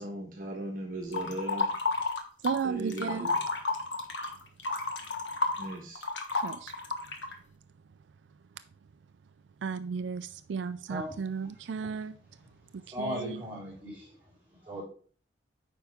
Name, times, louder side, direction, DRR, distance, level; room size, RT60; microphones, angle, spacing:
voice 1, 0.0-1.7 2.6-3.4 5.6-6.0, right 1 dB, 45° right, 1.3 m, -37 dB
sound 1, 1.1-2.6 2.9-7.3, left 3 dB, 85° left, 1.3 m, -31 dB
voice 2, 2.4-3.3 6.3-6.7 9.6-12.1 12.7-13.4, right 6 dB, 75° right, 0.4 m, -34 dB
voice 3, 12.9-14.1 14.7-14.8, equal, 10° right, 4.4 m, -37 dB
9.0 x 5.4 x 3.5 m
head